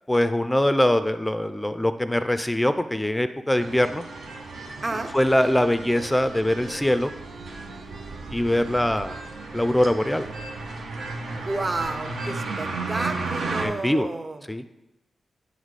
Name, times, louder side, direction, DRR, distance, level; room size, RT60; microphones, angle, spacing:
voice 1, 0.1-4.0 5.1-7.1 8.3-9.2 9.5-10.3 13.6-14.1 14.5-14.6, left 1 dB, 5° left, 10 dB, 0.4 m, -22 dB
sound 1, 3.6-13.6, right 3 dB, 80° right, 1.0 m, -34 dB
voice 2, 4.8-5.1 11.3-14.4, right 2 dB, 30° right, 8 dB, 0.6 m, -31 dB
9.4 x 4.1 x 4.7 m, 0.96 s
cardioid pair, 80°, 0 cm